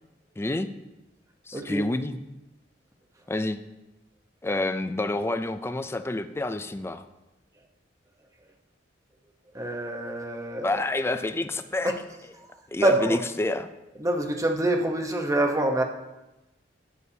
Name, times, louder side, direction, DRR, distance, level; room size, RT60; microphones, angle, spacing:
voice 1, 0.4-0.7 1.5-2.2 3.3-3.6 4.4-7.0 10.6-11.9 12.7-13.7, left 2 dB, 15° left, 10 dB, 0.4 m, -28 dB
voice 2, 1.5-1.8 9.5-10.8 11.8-11.9 12.8-13.2 14.0-15.8, right 1 dB, 20° right, 3 dB, 0.9 m, -25 dB
11.0 x 8.5 x 2.8 m, 0.99 s
head